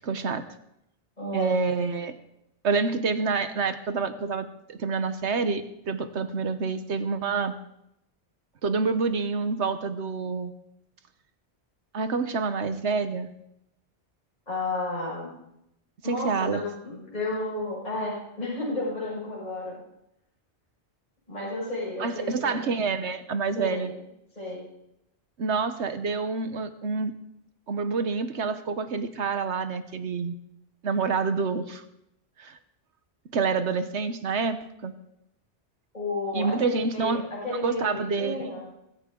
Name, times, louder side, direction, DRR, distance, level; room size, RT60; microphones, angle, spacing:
voice 1, 0.0-0.4 1.3-2.1 2.6-7.5 8.6-10.5 11.9-13.3 16.1-16.6 22.0-23.9 25.4-27.1 27.7-30.3 30.8-31.8 32.4-32.6 33.3-34.9 36.3-38.5, right 4 dB, 80° right, 9 dB, 1.3 m, -27 dB
voice 2, 1.2-1.6 14.5-15.3 16.0-19.8 21.3-22.7 23.5-23.9 24.4-24.7 35.9-38.7, left 2 dB, 35° left, -7 dB, 6.0 m, -32 dB
23.5 x 14.5 x 3.8 m, 0.81 s
omnidirectional pair, 1.1 m